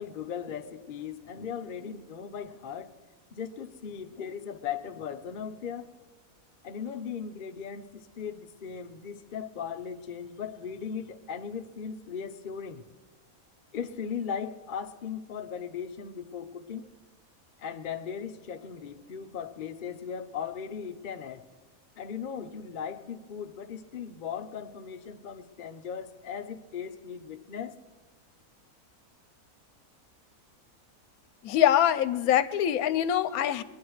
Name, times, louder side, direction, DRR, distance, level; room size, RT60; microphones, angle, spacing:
voice 1, 0.0-3.0 3.3-5.9 6.6-12.8 13.7-16.9 17.6-21.4 22.0-27.8, left 7 dB, 45° left, 0.7 m, -38 dB
voice 2, 31.4-33.6, left 11 dB, 80° left, 1.1 m, -24 dB
23.5 x 10.5 x 4.7 m
omnidirectional pair, 1.5 m